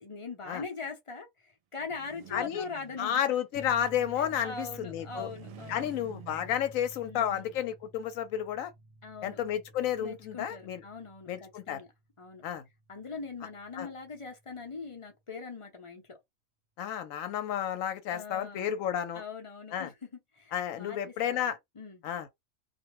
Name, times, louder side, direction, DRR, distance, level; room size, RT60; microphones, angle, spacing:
voice 1, 0.0-3.2 4.2-5.9 7.0-7.6 9.0-9.4 10.0-11.9 12.2-12.4 12.9-16.2 18.1-18.8 19.1-22.0, left 4 dB, 35° left, 0.5 m, -42 dB
sound 1, 1.8-3.5 4.9-7.0, right 11 dB, 75° right, 1.0 m, -52 dB
voice 2, 2.3-2.6 3.0-5.3 5.7-8.7 9.2-10.8 11.3-11.8 12.4-12.6 13.8-13.9 16.8-19.2 19.7-19.9 20.5-21.6 22.0-22.3, left 10 dB, 80° left, 1.0 m, -31 dB
sound 2, 3.5-14.7, right 2 dB, 50° right, 1.0 m, -52 dB
2.5 x 2.1 x 2.9 m
omnidirectional pair, 1.4 m